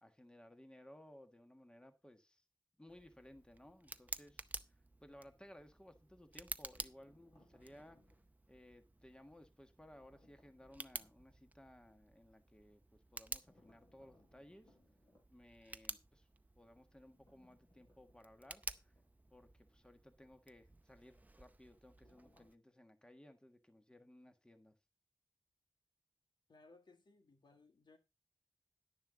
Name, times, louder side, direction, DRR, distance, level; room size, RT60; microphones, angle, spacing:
voice 1, 0.0-2.4 2.8-4.4 5.0-8.0 8.5-14.7 15.3-16.3 16.6-18.9 19.3-24.7, left 1 dB, 10° left, 1.5 m, -60 dB
Tick, 2.9-22.5, right 2 dB, 20° right, 0.6 m, -52 dB
sound 1, 7.0-8.3 9.9-11.3 13.4-15.3 17.0-19.4 19.7-19.8 22.0-22.7, left 1 dB, 45° left, 4.9 m, -72 dB
voice 2, 26.5-28.0, left 3 dB, 75° left, 1.9 m, -64 dB
11.0 x 10.0 x 3.9 m
wide cardioid pair, 100°, 8 cm